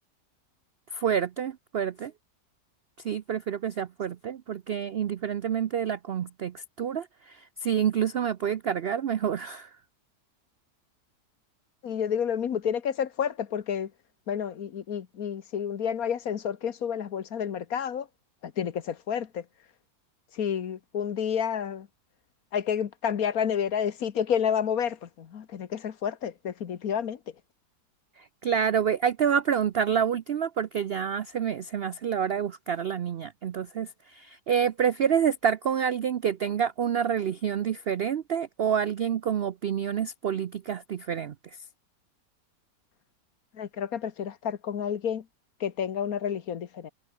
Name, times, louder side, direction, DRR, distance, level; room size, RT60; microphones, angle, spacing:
voice 1, 0.9-2.1 3.0-9.7 28.2-41.6, right 8 dB, 85° right, 0.5 m, -28 dB
voice 2, 11.8-13.9 14.3-18.1 18.4-19.4 20.3-21.9 22.5-27.2 43.5-45.2 45.6-46.9, left 8 dB, 60° left, 1.5 m, -30 dB
omnidirectional pair, 1.8 m